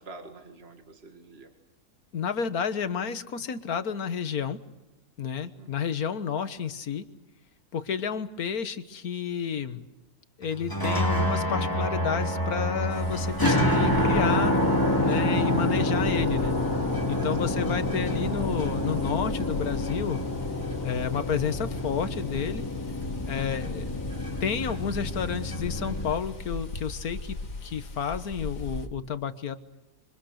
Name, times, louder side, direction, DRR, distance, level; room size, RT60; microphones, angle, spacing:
voice 1, 0.0-1.5 5.6-5.9 17.4-17.5 23.9-24.0, right 3 dB, 45° right, 4 dB, 2.4 m, -47 dB
voice 2, 2.1-4.6 5.2-7.0 7.7-9.8 10.4-14.5 15.0-16.5 17.1-20.2 20.8-22.7 23.3-23.9 24.4-29.6, left 7 dB, 85° left, 11 dB, 1.8 m, -31 dB
sound 1, 10.6-26.1, left 1 dB, 15° left, 2.5 m, -27 dB
sound 2, 12.9-28.9, left 2 dB, 65° left, 2.3 m, -40 dB
27.0 x 25.0 x 6.6 m, 0.98 s
omnidirectional pair, 1.5 m